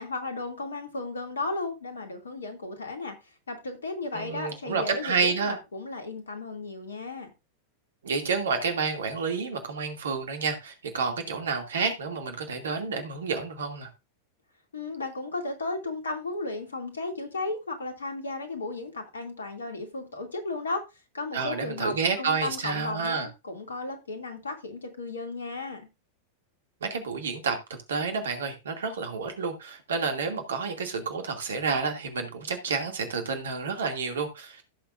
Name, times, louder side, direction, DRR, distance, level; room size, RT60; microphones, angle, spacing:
voice 1, 0.0-3.2 3.5-7.3 14.7-20.8 21.1-25.9, left 3 dB, 70° left, 2.6 m, -34 dB
voice 2, 4.1-5.6 8.0-13.9 21.3-23.3 26.8-27.6 27.9-34.7, right 5 dB, 65° right, 2.4 m, -29 dB
16.5 x 6.9 x 2.6 m
figure-of-eight pair, 90°, 0 cm